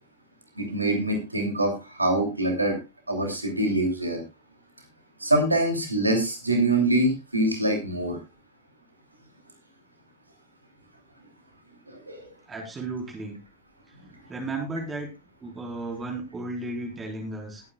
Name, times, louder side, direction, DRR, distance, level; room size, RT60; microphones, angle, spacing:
voice 1, 0.6-2.7 3.1-4.2 5.2-8.2 11.9-12.3, right 1 dB, 85° right, 4 dB, 2.8 m, -24 dB
voice 2, 12.5-13.4 14.3-15.1 15.4-17.6, right 2 dB, 20° right, 0 dB, 4.1 m, -34 dB
20.5 x 9.4 x 2.3 m, 0.26 s
figure-of-eight pair, 90°, 0 cm